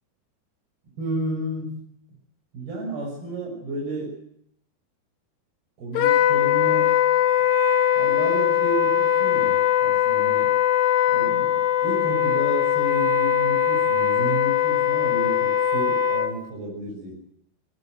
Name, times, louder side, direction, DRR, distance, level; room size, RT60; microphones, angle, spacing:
voice 1, 1.0-1.9 2.5-4.2 5.8-7.1 8.0-10.6 11.1-17.2, right 1 dB, 75° right, 0 dB, 8.4 m, -32 dB
Wind instrument woodwind instrument, 6.0-16.4, left 10 dB, 85° left, 3.3 m, -21 dB
20.5 x 19.0 x 8.0 m, 0.68 s
omnidirectional pair, 4.5 m